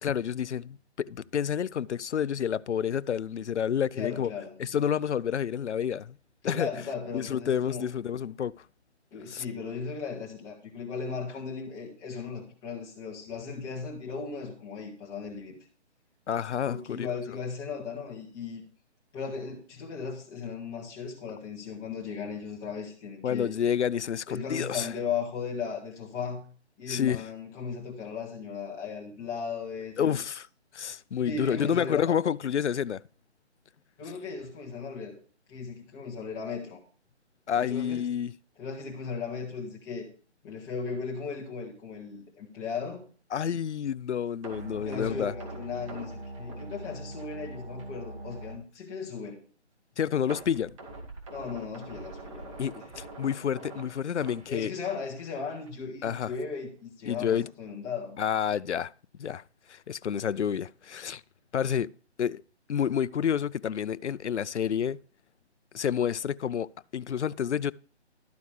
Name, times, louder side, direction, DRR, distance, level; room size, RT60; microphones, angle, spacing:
voice 1, 0.0-4.3 4.6-6.2 6.4-6.7 7.1-8.5 9.3-9.4 16.3-17.1 23.2-24.9 26.9-27.2 30.0-30.5 30.7-33.0 37.5-38.3 43.3-45.3 50.0-50.8 52.6-54.7 56.0-56.3 57.1-57.5 58.2-58.9 59.2-59.4 59.7-61.2 61.5-61.9 62.2-62.4 62.7-65.0 65.7-67.7, left 8 dB, 80° left, 0.6 m, -29 dB
voice 2, 3.9-4.6 6.4-7.8 9.1-15.6 16.6-18.6 19.1-23.5 24.3-26.4 26.8-30.3 31.1-32.2 34.0-35.1 35.5-36.8 37.6-38.0 38.6-40.1 40.4-43.0 44.7-49.4 51.3-52.7 54.5-58.2, left 5 dB, 10° left, 1.7 m, -37 dB
sound 1, 44.4-47.5 47.8-48.0 48.4-48.5 50.3-55.2 55.5-55.7 56.1-56.2, right 2 dB, 25° right, 2.2 m, -45 dB
sound 2, 44.5-48.6, right 1 dB, 55° right, 1.7 m, -42 dB
13.0 x 9.3 x 3.3 m
hypercardioid pair, 160°, 34 cm